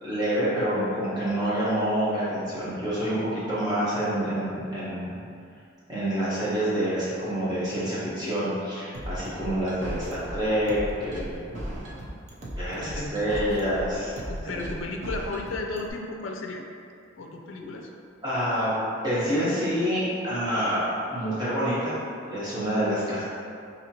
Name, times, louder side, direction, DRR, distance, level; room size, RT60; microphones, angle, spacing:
voice 1, 0.0-5.2 5.9-11.8 12.6-14.1 14.4-14.6 17.6-17.7 18.2-18.7 19.0-22.0 22.3-23.2, equal, 20° right, -11 dB, 1.0 m, -27 dB
sound 1, 8.9-15.9, equal, 35° right, 0.4 m, -36 dB
voice 2, 12.7-13.2 14.3-16.6 17.2-17.9, left 2 dB, 70° left, 2 dB, 0.4 m, -34 dB
4.2 x 2.8 x 2.8 m, 2.4 s
head